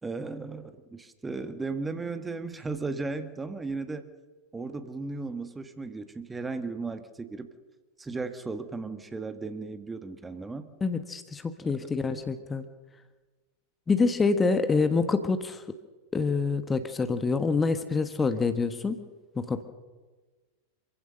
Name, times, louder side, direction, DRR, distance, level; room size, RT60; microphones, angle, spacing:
voice 1, 0.0-4.1 4.5-7.5 8.0-10.7 11.7-12.3 14.8-14.9, right 3 dB, 10° right, 10 dB, 1.5 m, -36 dB
voice 2, 10.8-12.6 13.9-15.6 16.1-19.0 19.4-19.6, left 4 dB, 15° left, 10 dB, 1.3 m, -26 dB
27.0 x 15.5 x 6.6 m, 1.3 s
figure-of-eight pair, 90°, 0 cm